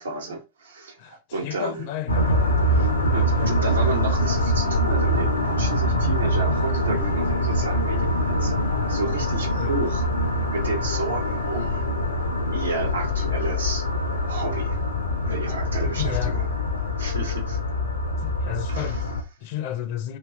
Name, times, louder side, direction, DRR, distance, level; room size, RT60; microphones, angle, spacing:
voice 1, 0.0-1.9 2.7-8.5 8.9-10.1 10.5-11.9 12.5-13.8 14.3-14.8 15.2-16.5 17.0-17.6 18.7-18.9, right 3 dB, 75° right, 1.1 m, -32 dB
voice 2, 1.0-2.5 3.4-3.6 9.5-9.7 16.0-16.4 18.2-20.2, left 11 dB, 50° left, 0.6 m, -33 dB
sound 1, 2.1-19.2, left 1 dB, 80° left, 0.8 m, -24 dB
3.3 x 3.0 x 4.3 m
figure-of-eight pair, 90°, 0 cm